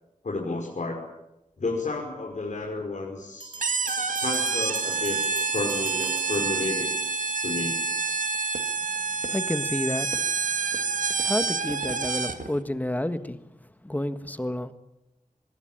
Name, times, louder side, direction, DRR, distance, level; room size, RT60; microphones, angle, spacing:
voice 1, 0.2-1.0 1.6-3.5 4.2-6.9 7.4-7.8, left 3 dB, 65° left, 5.5 m, -31 dB
sound 1, 3.4-7.2, right 3 dB, 35° right, 4.0 m, -40 dB
sound 2, 3.6-12.5, right 4 dB, 75° right, 2.0 m, -28 dB
voice 2, 9.1-10.7 11.1-14.7, left 1 dB, 10° left, 1.6 m, -31 dB
24.5 x 21.5 x 8.9 m
wide cardioid pair, 100°, 14 cm